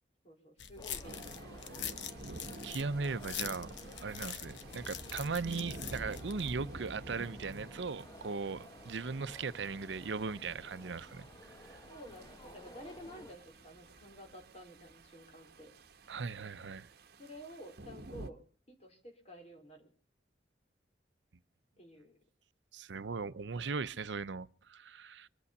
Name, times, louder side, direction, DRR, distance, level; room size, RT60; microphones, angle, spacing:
voice 1, 0.2-1.8 11.9-15.7 17.2-19.9 21.8-22.2, equal, 40° left, 4.2 m, -52 dB
sound 1, 0.6-6.5, left 8 dB, 85° left, 1.1 m, -44 dB
sound 2, 0.8-13.3, left 1 dB, 20° left, 1.4 m, -55 dB
sound 3, 1.0-18.3, right 2 dB, 60° right, 1.1 m, -50 dB
voice 2, 2.6-3.7 4.0-11.3 11.6-11.8 16.1-16.9 22.7-25.3, right 4 dB, 80° right, 0.7 m, -38 dB
24.5 x 8.6 x 6.6 m
head